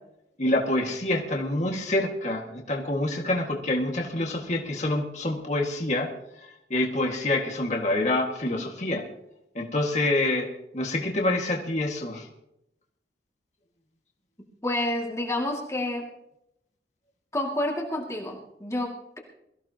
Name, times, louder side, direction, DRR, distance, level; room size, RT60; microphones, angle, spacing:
voice 1, 0.4-6.1 6.4-9.0 9.5-10.5 10.7-12.3, left 1 dB, 40° left, 0 dB, 1.9 m, -27 dB
voice 2, 14.6-16.0 17.3-19.2, left 1 dB, 15° left, -1 dB, 2.3 m, -29 dB
22.5 x 15.0 x 2.9 m, 0.81 s
head